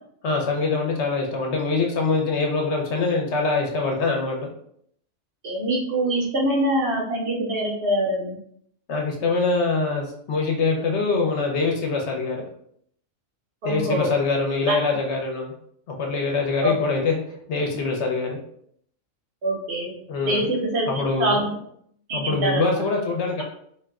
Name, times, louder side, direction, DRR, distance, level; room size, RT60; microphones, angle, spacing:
voice 1, 0.2-4.5 8.9-12.4 13.6-15.5 15.9-17.2 17.5-18.4 20.1-20.5 20.9-21.4 22.1-23.4, left 3 dB, 65° left, 0 dB, 0.9 m, -24 dB
voice 2, 5.4-8.4 13.6-14.1 14.7-14.8 16.6-16.7 19.4-21.5 22.1-22.8, right 1 dB, 65° right, 0 dB, 0.9 m, -24 dB
2.5 x 2.1 x 3.4 m, 0.67 s
omnidirectional pair, 1.3 m